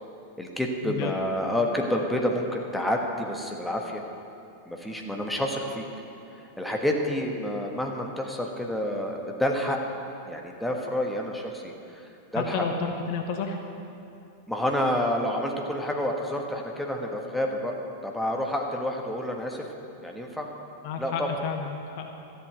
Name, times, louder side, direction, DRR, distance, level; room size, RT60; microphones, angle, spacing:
voice 1, 0.4-4.0 4.6-5.8 6.6-9.8 10.3-12.7 14.5-17.7 18.0-19.7 20.0-20.5 21.0-21.3, left 1 dB, 5° left, 1 dB, 1.4 m, -29 dB
voice 2, 12.3-13.6 20.8-22.1, left 5 dB, 45° left, 4 dB, 1.2 m, -31 dB
13.0 x 8.1 x 8.0 m, 2.7 s
figure-of-eight pair, 90°, 0 cm